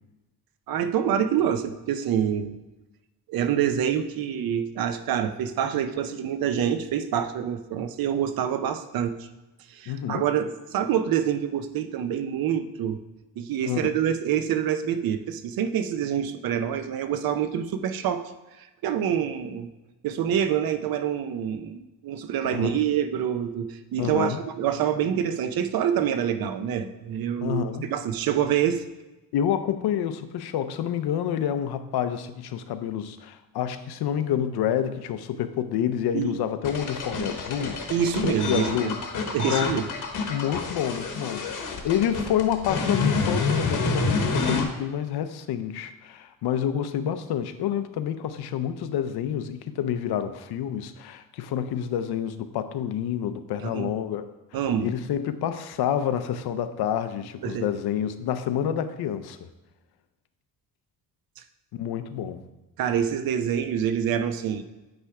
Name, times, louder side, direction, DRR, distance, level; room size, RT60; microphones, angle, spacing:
voice 1, 0.7-2.6 3.3-9.2 9.7-13.0 13.4-18.3 18.6-19.7 20.0-27.6 27.9-28.8 36.1-36.4 37.9-38.9 39.3-39.8 53.6-53.9 54.5-54.9 57.4-57.7 62.8-64.6, right 9 dB, 65° right, 10 dB, 0.6 m, -26 dB
voice 2, 9.9-10.2 13.6-13.9 22.4-22.8 24.0-24.4 27.4-27.9 29.3-37.8 38.2-39.0 39.5-39.8 40.3-54.3 54.8-59.5 61.7-62.4, left 9 dB, 90° left, 10 dB, 0.6 m, -28 dB
sound 1, 36.6-44.6, left 4 dB, 55° left, 1.0 m, -28 dB
8.7 x 3.4 x 4.7 m, 1.0 s
wide cardioid pair, 175°, 37 cm